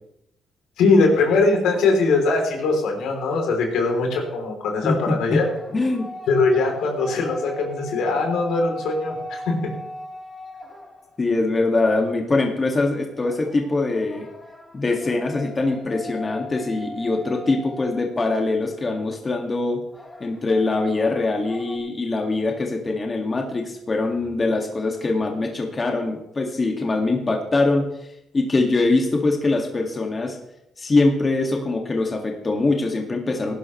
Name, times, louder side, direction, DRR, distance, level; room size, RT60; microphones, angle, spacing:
voice 1, 0.8-5.5 6.3-9.6, left 3 dB, 85° left, 2 dB, 3.3 m, -21 dB
sound 1, 5.3-11.4 13.2-18.5 19.9-21.8, equal, 10° left, 2.2 m, -39 dB
voice 2, 5.7-6.1 11.2-14.3 14.7-19.8 20.2-27.8 28.3-30.4 30.8-33.6, left 3 dB, 30° left, 2 dB, 2.0 m, -23 dB
18.0 x 11.0 x 3.2 m, 0.81 s
cardioid pair, 90°, 0 cm